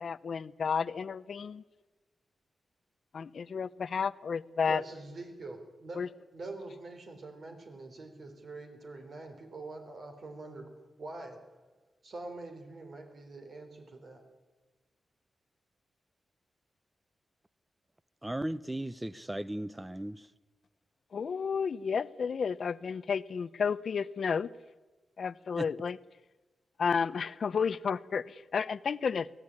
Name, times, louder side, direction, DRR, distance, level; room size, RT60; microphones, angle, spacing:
voice 1, 0.0-1.6 3.1-4.8 6.0-6.1 21.1-24.5 25.2-26.0 26.8-29.4, left 6 dB, 55° left, 0.7 m, -32 dB
voice 2, 4.7-6.0 6.3-10.7 11.0-11.4 12.0-14.2, right 2 dB, 50° right, 3.9 m, -44 dB
voice 3, 18.2-20.3 25.6-25.7, right 1 dB, 10° right, 0.7 m, -36 dB
23.5 x 17.0 x 9.9 m
wide cardioid pair, 150°, 0 cm